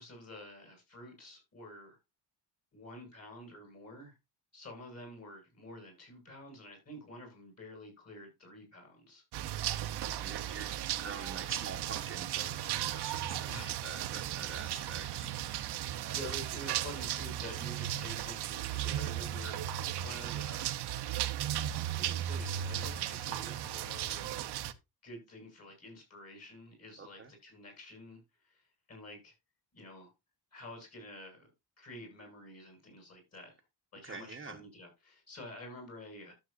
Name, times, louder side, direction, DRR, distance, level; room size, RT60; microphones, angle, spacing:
voice 1, 0.0-2.0 2.7-4.2 4.5-9.2 13.5-13.8 14.7-15.0 15.6-19.7 20.0-20.7 22.0-24.4 25.0-29.3 29.7-30.1 30.5-31.5 31.8-33.6 33.9-36.3, left 1 dB, 40° left, 6.9 m, -49 dB
sound 1, 9.3-24.7, right 12 dB, 75° right, 0.9 m, -36 dB
voice 2, 10.0-15.3 16.0-16.4 27.0-27.3 34.0-34.6, right 5 dB, 30° right, 1.1 m, -46 dB
13.0 x 7.5 x 2.5 m
cardioid pair, 140°, 41 cm